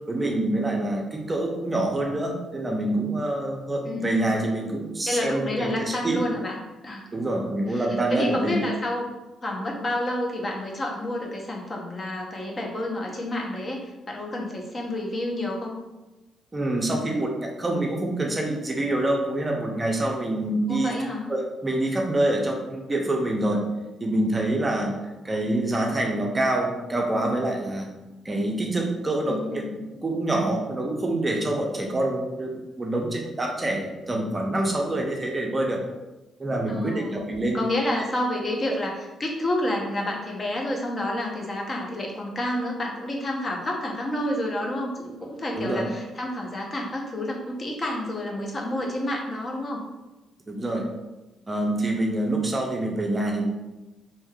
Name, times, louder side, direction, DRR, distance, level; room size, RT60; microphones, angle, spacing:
voice 1, 0.1-6.2 7.1-8.6 16.5-20.9 21.3-23.7 24.0-25.0 25.2-27.9 28.2-29.6 29.9-35.8 36.4-37.7 45.6-45.9 50.5-50.9 51.5-53.4, right 1 dB, 25° right, 1 dB, 0.5 m, -26 dB
voice 2, 3.9-4.4 5.1-6.6 6.8-7.0 7.7-9.1 9.4-15.7 20.7-21.3 29.2-29.7 36.7-37.2 37.5-49.8, left 1 dB, 35° left, 0 dB, 0.6 m, -29 dB
3.3 x 2.7 x 2.2 m, 1.1 s
cardioid pair, 90°, 0 cm